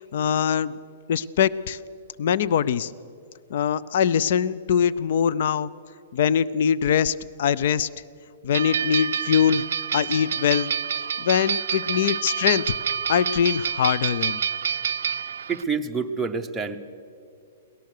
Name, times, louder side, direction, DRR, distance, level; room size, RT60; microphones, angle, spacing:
voice 1, 0.1-0.7 1.1-1.8 2.2-2.9 3.5-5.7 6.1-7.9 8.4-9.6 9.9-10.7 11.2-12.7 13.1-14.4, left 8 dB, 50° left, 19 dB, 0.5 m, -22 dB
sound 1, 8.5-15.6, right 8 dB, 80° right, 0.4 m, -27 dB
voice 2, 15.5-16.8, right 5 dB, 5° right, 2 dB, 0.7 m, -27 dB
23.0 x 18.0 x 6.6 m, 2.4 s
hypercardioid pair, 170°, 0 cm